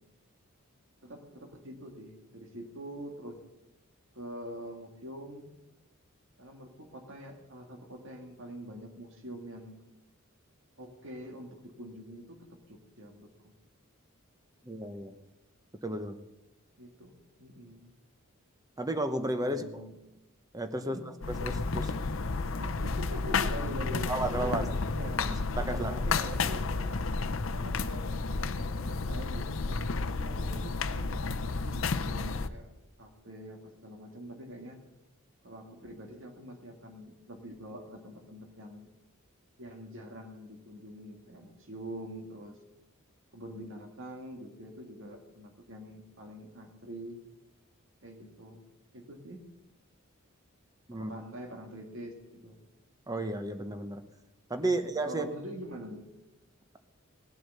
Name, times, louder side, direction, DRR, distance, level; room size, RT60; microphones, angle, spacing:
voice 1, 1.0-3.4 4.1-5.5 6.4-9.8 10.8-13.5 16.8-17.9 19.4-20.0 20.8-21.1 22.6-24.7 24.9-27.1 27.5-32.7 33.0-34.8 35.4-38.9 39.6-42.6 43.3-47.2 48.0-48.6 48.9-49.5 50.9-52.6 54.6-56.1, equal, 65° right, 4 dB, 2.1 m, -45 dB
voice 2, 14.6-15.1 15.8-16.2 18.8-19.8 20.5-21.9 24.1-24.7 25.3-26.0 50.9-51.1 53.1-54.0 54.5-55.3, right 1 dB, 15° right, 9 dB, 1.0 m, -33 dB
sound 1, 21.2-32.5, left 4 dB, 65° left, 0.7 m, -31 dB
18.5 x 7.9 x 6.7 m, 0.95 s
head